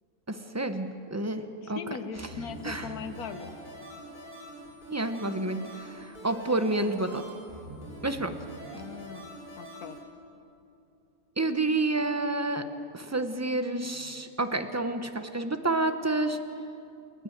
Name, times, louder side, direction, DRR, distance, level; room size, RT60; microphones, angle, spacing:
voice 1, 0.3-1.8 2.6-2.9 4.9-7.2 8.0-8.3 11.4-12.6 12.9-16.4, right 2 dB, 15° right, 8 dB, 0.7 m, -29 dB
voice 2, 1.6-3.6 8.7-10.0, left 6 dB, 85° left, 10 dB, 1.5 m, -40 dB
sound 1, 2.1-10.0, right 1 dB, 40° left, 5.9 m, -45 dB
29.5 x 10.0 x 9.2 m, 2.7 s
omnidirectional pair, 1.5 m